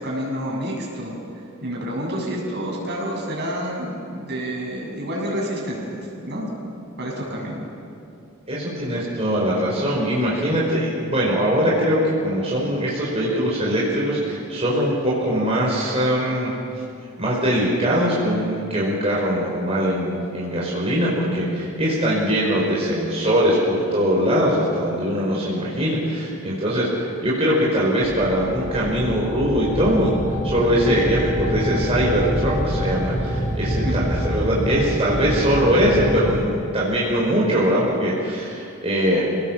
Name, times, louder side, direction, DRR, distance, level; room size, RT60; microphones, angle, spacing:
voice 1, 0.0-6.5 7.0-7.7 33.6-34.1, equal, 55° right, -2 dB, 7.2 m, -29 dB
voice 2, 8.5-16.5 17.2-30.2 30.4-39.2, equal, 30° right, -5 dB, 5.2 m, -21 dB
sound 1, 28.0-36.4, equal, 10° left, 6.5 m, -26 dB
29.5 x 18.5 x 7.5 m, 2.7 s
head